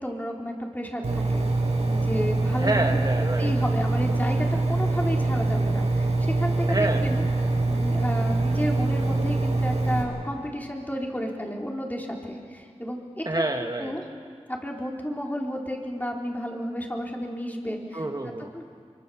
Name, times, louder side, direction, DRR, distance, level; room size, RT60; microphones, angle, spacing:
voice 1, 0.0-1.5 1.8-2.8 3.4-7.2 7.7-14.0 14.5-18.0 18.5-18.6, equal, 15° left, 0 dB, 3.9 m, -32 dB
Engine, 1.0-10.0, right 2 dB, 85° right, 3.8 m, -24 dB
voice 2, 2.6-3.5 6.7-7.1 13.2-13.9 17.9-18.5, right 2 dB, 35° right, 3 dB, 1.4 m, -27 dB
25.0 x 23.5 x 7.1 m, 2.1 s
wide cardioid pair, 45°, 11 cm